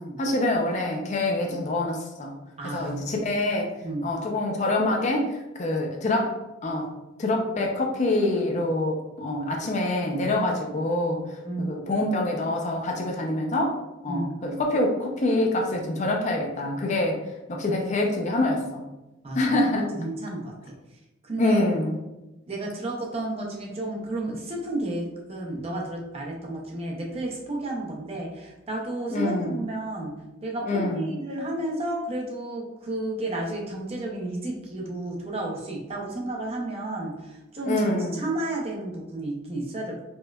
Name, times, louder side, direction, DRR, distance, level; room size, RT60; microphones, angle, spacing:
voice 1, 0.2-2.4 2.7-3.7 4.0-6.3 6.6-6.9 7.2-11.2 11.6-13.8 14.0-17.2 17.5-18.8 19.3-19.9 21.4-22.0 29.1-29.6 30.7-31.1 37.7-38.2, left 2 dB, 35° left, 1 dB, 0.4 m, -25 dB
voice 2, 2.6-3.2 3.8-4.1 11.4-11.7 14.1-14.3 19.2-20.5 21.2-21.7 22.5-30.1 30.4-40.0, right 1 dB, 30° right, -1 dB, 0.6 m, -32 dB
4.3 x 2.1 x 2.2 m, 1.0 s
head